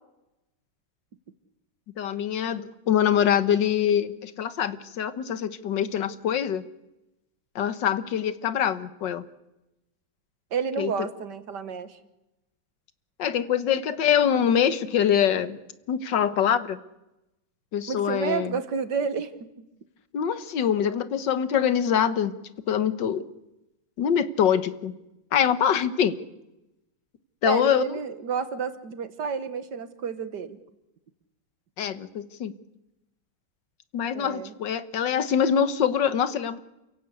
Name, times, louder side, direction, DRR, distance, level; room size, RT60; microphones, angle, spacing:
voice 1, 2.0-6.6 7.6-9.2 10.8-10.9 13.2-15.6 15.9-16.8 17.7-18.6 20.1-22.3 22.7-23.3 24.0-24.9 25.3-26.2 27.4-27.9 31.8-32.5 33.9-36.6, left 8 dB, 65° left, 13 dB, 1.8 m, -24 dB
voice 2, 10.5-12.0 17.9-19.6 27.4-30.6 34.1-34.5, right 6 dB, 60° right, 12 dB, 1.9 m, -30 dB
28.5 x 16.5 x 8.4 m, 0.95 s
omnidirectional pair, 2.1 m